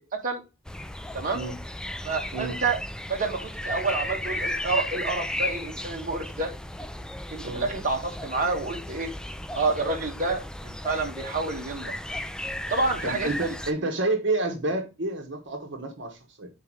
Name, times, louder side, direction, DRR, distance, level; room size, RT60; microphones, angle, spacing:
voice 1, 0.1-0.4 1.1-1.4 2.0-2.8 3.1-6.5 7.3-9.1 9.5-11.9 12.7-13.5, right 3 dB, 45° right, 1.4 m, -28 dB
sound 1, 0.7-13.7, left 1 dB, 5° left, 0.3 m, -35 dB
voice 2, 13.0-16.5, right 2 dB, 65° right, 1.3 m, -29 dB
5.8 x 4.7 x 4.6 m
head